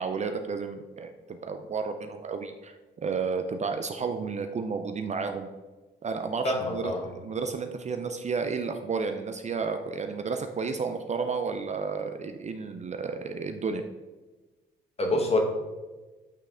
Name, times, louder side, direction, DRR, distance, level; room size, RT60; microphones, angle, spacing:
voice 1, 0.0-2.7 3.0-5.5 6.0-13.8, right 5 dB, 35° right, 7 dB, 0.4 m, -32 dB
voice 2, 6.4-7.1 15.0-15.4, left 2 dB, 30° left, 2 dB, 1.3 m, -26 dB
8.3 x 3.2 x 3.7 m, 1.2 s
cardioid pair, 90°, 20 cm